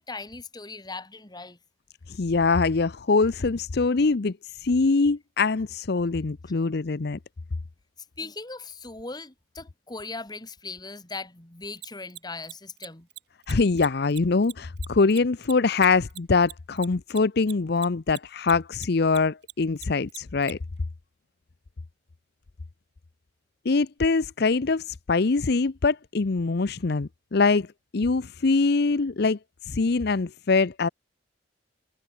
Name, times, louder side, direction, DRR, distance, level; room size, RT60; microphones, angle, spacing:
voice 1, 0.0-1.6 8.2-13.1, left 3 dB, 20° left, 2.7 m, -39 dB
voice 2, 2.1-7.2 13.5-20.6 23.6-27.7 27.9-29.4 29.6-30.9, left 4 dB, 60° left, 0.7 m, -23 dB
Mechanisms, 11.8-18.5 18.8-20.5, right 16 dB, 65° right, 1.7 m, -41 dB
head